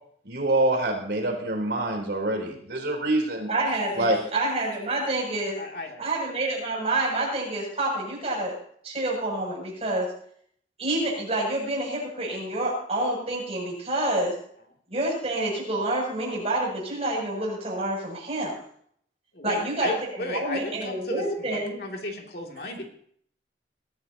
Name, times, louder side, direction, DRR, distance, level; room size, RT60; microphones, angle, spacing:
voice 1, 0.3-3.5 4.0-4.2, right 1 dB, 75° right, 1 dB, 3.8 m, -25 dB
voice 2, 3.5-5.6 6.0-8.6 8.8-10.1 10.8-14.4 14.9-18.6 19.4-21.8, right 1 dB, 35° right, -2 dB, 7.7 m, -28 dB
voice 3, 5.6-6.0 19.3-22.8, left 1 dB, 60° left, 1 dB, 2.8 m, -34 dB
22.0 x 14.0 x 2.9 m, 0.62 s
head